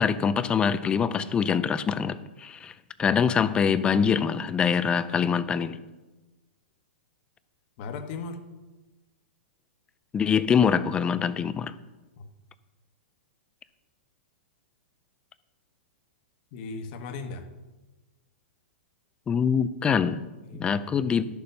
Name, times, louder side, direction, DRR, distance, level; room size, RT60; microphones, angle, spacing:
voice 1, 0.0-2.7 3.0-5.8 10.1-11.7 19.3-20.2 20.6-21.2, left 7 dB, 15° left, 14 dB, 0.4 m, -24 dB
voice 2, 7.8-8.4 12.2-12.3 16.5-17.5 20.4-20.8, left 4 dB, 45° left, 7 dB, 1.3 m, -37 dB
11.5 x 7.0 x 5.4 m, 1.2 s
hypercardioid pair, 140°, 6 cm